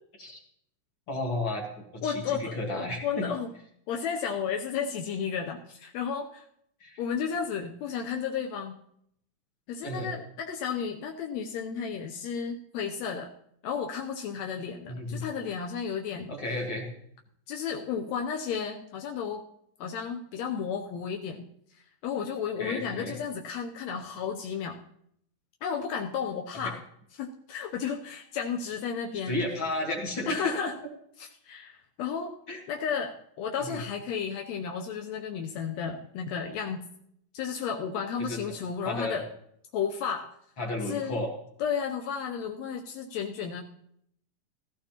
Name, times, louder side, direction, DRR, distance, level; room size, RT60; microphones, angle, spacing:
voice 1, 1.1-3.3 6.8-7.0 9.8-10.1 14.9-15.2 16.3-16.9 22.6-23.1 26.6-26.7 29.3-30.5 32.5-32.6 33.6-33.8 38.2-38.4 38.8-39.2 40.6-41.3, left 1 dB, 45° left, -1 dB, 2.1 m, -33 dB
voice 2, 2.0-3.5 3.9-6.4 7.0-8.8 9.7-13.3 13.6-16.3 17.5-19.4 19.8-21.4 22.0-24.8 25.6-26.8 27.2-29.4 30.3-30.8 31.2-32.4 32.7-36.9 37.3-39.3 39.7-40.4 40.9-41.2 41.6-43.6, left 7 dB, 80° left, 2 dB, 1.6 m, -33 dB
16.0 x 14.0 x 2.9 m, 0.73 s
omnidirectional pair, 3.9 m